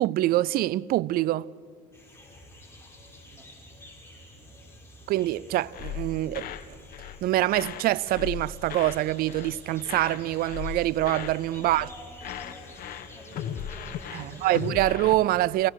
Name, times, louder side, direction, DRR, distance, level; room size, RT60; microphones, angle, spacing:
voice 1, 0.0-1.5 5.1-6.5 7.2-11.9 14.1-15.7, right 15 dB, 65° right, 0.5 m, -25 dB
sound 1, 1.9-14.7, left 1 dB, 15° left, 6.0 m, -49 dB
voice 2, 4.2-4.7 11.6-14.6, left 1 dB, 5° right, 3.7 m, -50 dB
sound 2, 5.7-6.7 6.9-7.2 7.5-9.0 9.3-9.6 9.8-11.4 11.6-11.9 12.2-15.1, left 9 dB, 60° left, 1.4 m, -37 dB
29.5 x 18.0 x 6.3 m
supercardioid pair, 90°, 17 cm